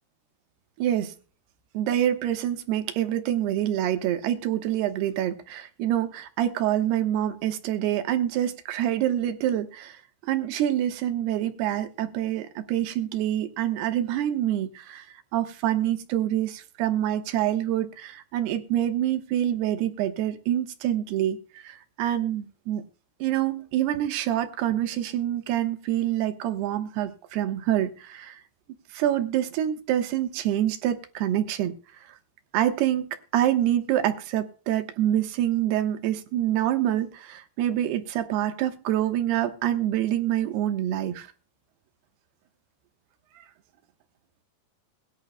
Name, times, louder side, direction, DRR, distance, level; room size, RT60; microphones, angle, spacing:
voice 1, 0.8-1.1 1.7-10.0 10.2-21.4 21.6-22.8 23.2-28.4 28.9-31.7 32.5-41.3, right 12 dB, 80° right, 3.2 m, -26 dB
22.0 x 10.5 x 2.2 m
omnidirectional pair, 4.6 m